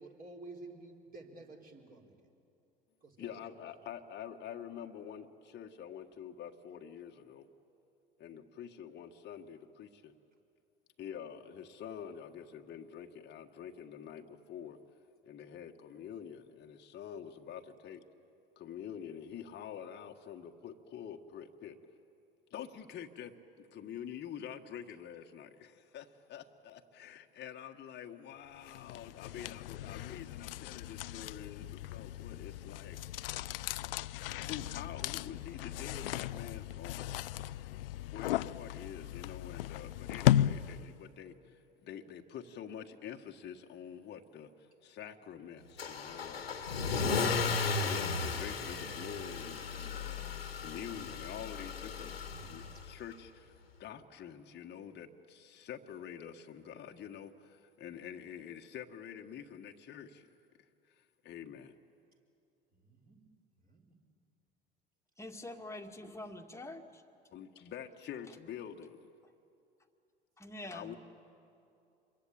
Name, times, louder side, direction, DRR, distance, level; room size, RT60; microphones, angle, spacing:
voice 1, 0.0-2.1 3.0-3.6 62.7-63.2 63.6-64.0, right 2 dB, 30° right, 1 dB, 4.5 m, -52 dB
voice 2, 3.2-7.5 8.2-10.1 11.0-14.8 15.2-18.0 18.5-21.8 22.5-33.0 34.2-37.1 38.1-46.7 47.8-52.1 52.4-53.5 53.8-60.3 60.9-61.8 67.3-69.1 70.7-71.0, left 8 dB, 35° left, 3 dB, 1.5 m, -47 dB
sound 1, 28.7-41.0, left 13 dB, 70° left, 0.5 m, -36 dB
Car / Engine starting / Accelerating revving vroom, 45.8-52.9, left 4 dB, 85° left, 1.7 m, -35 dB
voice 3, 65.2-67.0 70.4-71.0, left 1 dB, 10° left, 4 dB, 2.1 m, -45 dB
27.0 x 22.5 x 8.7 m, 2.6 s
figure-of-eight pair, 70°, 29 cm